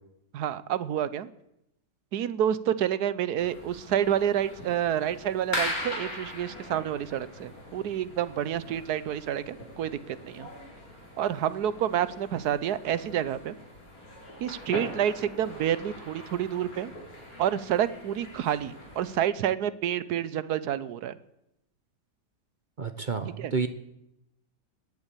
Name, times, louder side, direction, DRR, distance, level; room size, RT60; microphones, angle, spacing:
voice 1, 0.3-1.3 2.1-10.5 11.2-13.5 14.4-16.9 17.4-21.2 23.4-23.5, right 10 dB, 70° right, 16 dB, 1.2 m, -29 dB
sound 1, 3.4-19.3, left 1 dB, 55° left, 4.6 m, -41 dB
voice 2, 22.8-23.7, right 5 dB, 40° right, 10 dB, 0.7 m, -30 dB
20.0 x 8.5 x 8.3 m, 0.84 s
omnidirectional pair, 1.8 m